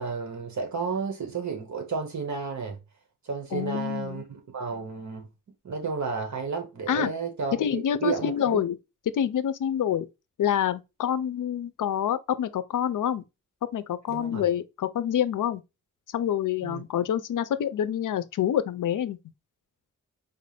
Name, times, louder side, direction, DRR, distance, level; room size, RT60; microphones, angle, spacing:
voice 1, 0.0-2.8 3.2-5.3 5.6-8.6 14.1-14.4 16.6-16.8, right 5 dB, 60° right, 1.3 m, -32 dB
voice 2, 3.5-4.2 6.9-7.1 7.6-8.8 9.1-10.1 10.4-13.2 13.7-15.6 16.1-19.2, left 9 dB, 75° left, 0.5 m, -27 dB
4.5 x 2.5 x 3.2 m
wide cardioid pair, 105°, 32 cm